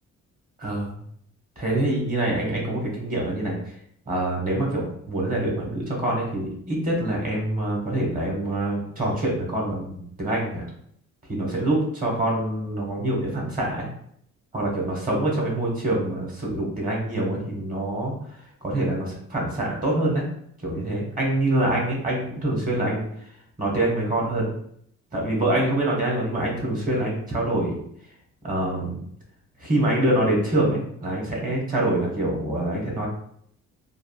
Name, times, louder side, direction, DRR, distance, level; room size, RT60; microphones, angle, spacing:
voice 1, 0.6-1.0 1.6-3.5 4.1-10.6 11.3-13.9 14.5-18.1 18.6-20.2 20.6-23.0 23.6-24.5 25.1-27.8 28.4-29.0 29.6-33.1, right 1 dB, 30° right, -2 dB, 1.4 m, -25 dB
3.5 x 2.4 x 2.4 m, 0.67 s
cardioid pair, 90°, 30 cm